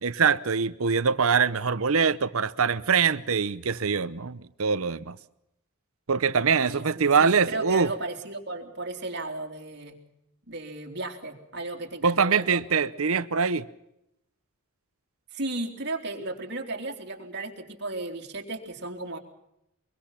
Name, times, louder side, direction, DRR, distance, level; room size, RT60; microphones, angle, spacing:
voice 1, 0.0-5.2 6.1-7.9 12.0-13.6, right 5 dB, 70° right, 0.8 m, -23 dB
voice 2, 6.6-10.0 10.5-12.6 15.3-19.2, right 2 dB, 50° right, 3.6 m, -35 dB
24.0 x 23.0 x 5.8 m
head